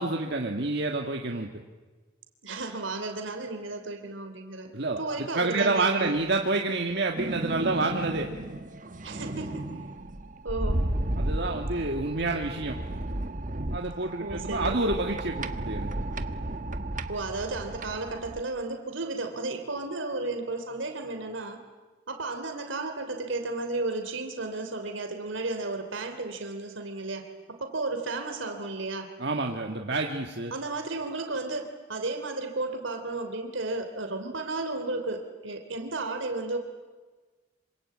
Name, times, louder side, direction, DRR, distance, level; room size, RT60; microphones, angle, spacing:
voice 1, 0.0-1.5 4.7-8.3 11.2-12.8 13.7-15.9 29.2-30.5, right 2 dB, 60° right, 2 dB, 1.8 m, -28 dB
voice 2, 2.4-6.2 9.0-9.7 10.4-10.8 14.2-14.8 17.1-21.6 22.1-29.1 30.5-36.6, right 2 dB, 90° right, 6 dB, 3.2 m, -33 dB
sound 1, 7.2-18.4, right 1 dB, 40° right, 1.3 m, -33 dB
26.5 x 25.5 x 8.5 m, 1.3 s
head